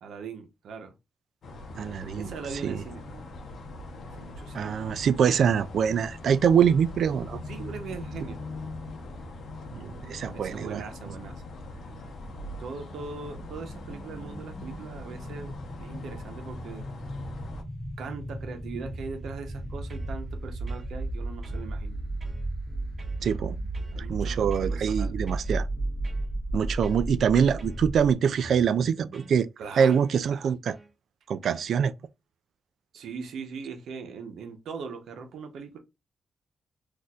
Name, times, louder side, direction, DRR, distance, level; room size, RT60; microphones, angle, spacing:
voice 1, 0.0-0.9 2.1-3.3 4.1-4.8 7.5-8.4 10.3-11.3 12.6-16.8 18.0-22.0 23.9-25.2 29.6-30.0 32.9-35.8, right 5 dB, 85° right, 0.8 m, -40 dB
sound 1, 1.4-17.6, left 2 dB, 60° left, 0.7 m, -41 dB
voice 2, 1.7-2.3 2.6-2.8 4.5-7.4 9.7-10.8 23.2-23.6 24.0-25.7 26.5-29.5 29.8-30.8 31.3-31.9, right 7 dB, 65° right, 0.3 m, -24 dB
sound 2, 12.2-28.1, right 2 dB, 10° left, 0.7 m, -34 dB
sound 3, 19.5-20.1 20.7-21.2 21.4-23.2 23.7-24.0 24.5-24.8 25.3-26.3 26.8-27.3 27.6-29.4 29.9-30.1 30.7-30.9 31.4-31.7, right 1 dB, 30° right, 0.6 m, -47 dB
4.2 x 2.5 x 2.3 m
wide cardioid pair, 145°, 0 cm